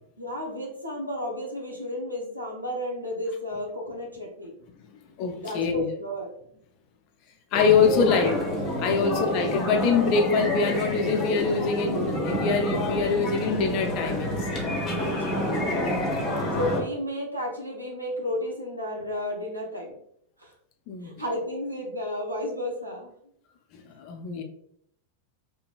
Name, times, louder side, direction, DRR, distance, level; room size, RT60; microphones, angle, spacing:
voice 1, 0.2-4.5 5.4-6.3 8.9-9.5 14.8-16.1 16.5-20.0 20.4-20.5 21.0-23.1, left 1 dB, 85° right, -2 dB, 0.8 m, -33 dB
voice 2, 5.2-5.9 7.5-8.5 8.8-14.5 20.9-21.1 23.7-24.4, left 5 dB, 40° left, 5 dB, 0.5 m, -24 dB
sound 1, 7.5-16.8, left 1 dB, 25° left, 0.9 m, -28 dB
3.0 x 2.9 x 2.4 m, 0.69 s
figure-of-eight pair, 90°, 0 cm